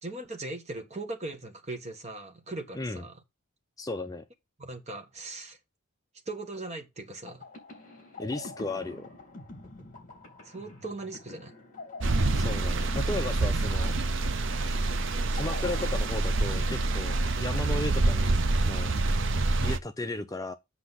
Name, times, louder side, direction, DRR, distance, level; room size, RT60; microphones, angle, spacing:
voice 1, 0.0-3.1 4.6-5.6 6.3-7.4 10.4-11.5, right 2 dB, 30° right, 1.3 m, -39 dB
voice 2, 3.8-4.2 8.2-9.1 12.3-13.9 15.3-18.9 19.6-20.5, left 2 dB, 15° left, 0.4 m, -35 dB
sound 1, 7.3-17.9, left 2 dB, 35° left, 2.8 m, -45 dB
sound 2, 12.0-19.8, right 2 dB, 55° right, 0.6 m, -27 dB
8.0 x 6.0 x 4.0 m
head